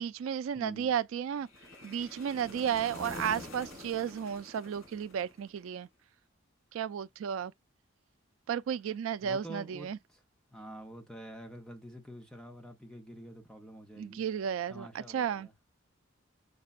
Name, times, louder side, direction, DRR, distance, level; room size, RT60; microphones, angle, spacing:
voice 1, 0.0-1.5 1.8-5.9 6.7-7.5 8.5-10.0 14.0-15.5, right 8 dB, 80° right, 0.3 m, -33 dB
voice 2, 0.5-0.9 2.5-2.8 9.2-10.2 10.5-14.2 14.7-15.5, right 1 dB, 5° left, 0.7 m, -47 dB
sound 1, 1.4-5.7, left 2 dB, 80° left, 2.1 m, -46 dB
6.6 x 2.2 x 2.4 m
head